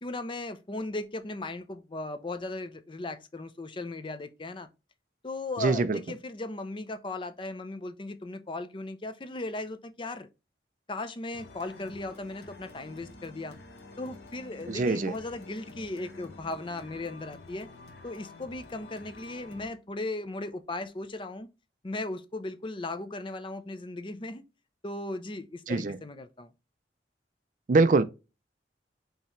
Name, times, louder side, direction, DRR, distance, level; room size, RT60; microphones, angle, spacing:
voice 1, 0.0-4.7 5.2-10.3 10.9-13.6 14.0-17.7 18.0-21.5 21.8-24.4 24.8-26.5, left 2 dB, 30° left, 0.5 m, -37 dB
voice 2, 5.6-6.0 14.7-15.1 25.7-26.0 27.7-28.0, right 3 dB, 45° right, 0.4 m, -23 dB
sound 1, 11.3-19.7, left 3 dB, 70° left, 1.2 m, -49 dB
5.6 x 3.0 x 3.0 m
head